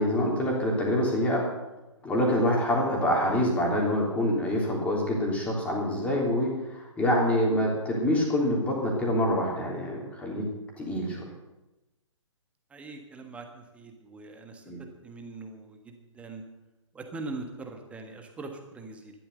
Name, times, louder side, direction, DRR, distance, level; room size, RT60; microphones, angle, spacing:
voice 1, 0.0-1.4 2.0-10.4 10.8-11.3 14.7-14.8, left 1 dB, 10° left, -2 dB, 3.4 m, -26 dB
voice 2, 12.7-14.6 15.0-16.4 16.9-19.1, right 3 dB, 5° right, 4 dB, 1.5 m, -42 dB
13.5 x 12.0 x 6.9 m, 1.0 s
figure-of-eight pair, 130°, 16 cm